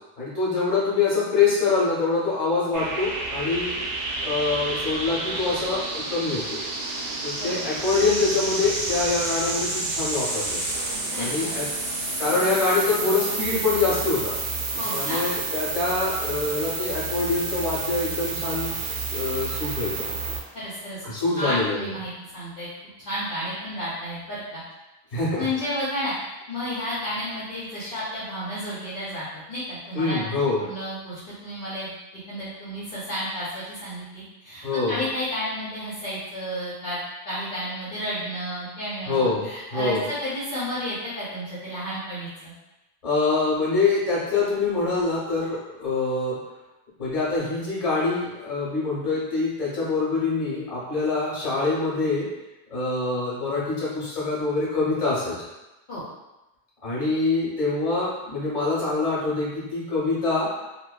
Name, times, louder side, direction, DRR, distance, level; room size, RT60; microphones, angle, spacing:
voice 1, 0.2-3.8 4.2-6.6 7.2-10.6 11.2-11.6 12.2-14.4 14.9-18.7 19.1-20.1 21.0-21.9 25.1-25.4 29.9-30.6 34.6-35.0 39.1-40.0 43.0-46.4 47.0-52.3 52.7-55.3 56.8-60.5, left 3 dB, 35° left, -8 dB, 1.1 m, -25 dB
sound 1, 2.7-20.4, right 3 dB, 65° right, 0.8 m, -30 dB
voice 2, 11.1-11.5 14.8-15.2 20.5-21.0 21.3-22.7 23.0-24.6 25.4-26.1 26.5-30.2 30.6-37.0 37.3-42.5 55.9-56.0, equal, 55° left, -10 dB, 0.8 m, -32 dB
2.9 x 2.3 x 2.3 m, 1.0 s
omnidirectional pair, 1.1 m